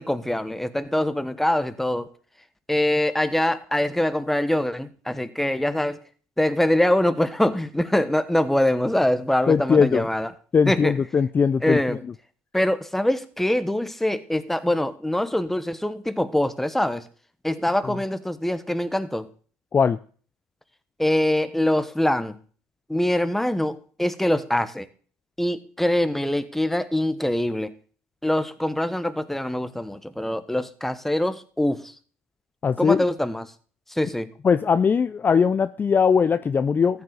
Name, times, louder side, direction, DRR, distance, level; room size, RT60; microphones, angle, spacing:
voice 1, 0.0-2.1 2.7-6.0 6.4-10.3 10.7-10.9 11.6-12.0 12.5-17.0 17.4-19.3 21.0-22.4 22.9-24.9 25.4-27.7 28.2-31.9 32.8-33.5 33.9-34.3, left 1 dB, 5° left, 12 dB, 1.1 m, -24 dB
voice 2, 9.5-10.1 10.5-12.0 17.9-18.0 19.7-20.0 32.6-33.0 34.4-37.0, left 6 dB, 30° left, 13 dB, 0.5 m, -20 dB
14.5 x 9.6 x 4.1 m, 0.42 s
supercardioid pair, 85°, 7 cm